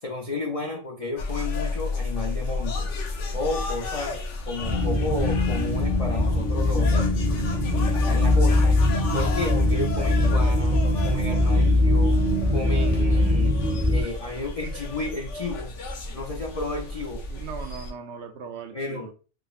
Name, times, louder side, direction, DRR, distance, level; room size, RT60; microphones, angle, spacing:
voice 1, 0.0-2.9 3.3-4.2 4.5-7.1 7.7-8.7 9.1-10.8 11.0-12.2 12.5-13.6 13.9-15.7 16.1-17.2 18.7-19.1, left 2 dB, 55° left, 0 dB, 0.4 m, -32 dB
sound 1, 1.2-17.9, left 3 dB, 75° left, 1.0 m, -33 dB
sound 2, 4.6-14.0, left 1 dB, 40° right, 0.8 m, -21 dB
voice 2, 17.3-19.1, right 6 dB, 70° right, 5 dB, 0.8 m, -39 dB
4.5 x 2.1 x 2.3 m, 0.35 s
omnidirectional pair, 1.3 m